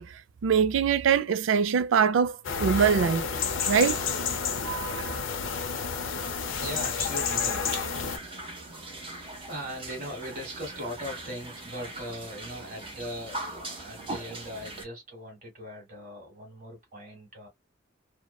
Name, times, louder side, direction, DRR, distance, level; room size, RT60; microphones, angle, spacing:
voice 1, 0.0-3.2 3.6-4.0 4.6-5.2, right 7 dB, 75° right, 0.4 m, -24 dB
sound 1, 2.4-8.2, left 6 dB, 80° left, 0.7 m, -30 dB
voice 2, 6.6-8.0 9.0-17.5, equal, 45° right, 1.4 m, -39 dB
sound 2, 7.8-14.8, right 2 dB, 30° right, 1.0 m, -41 dB
2.8 x 2.1 x 2.3 m
head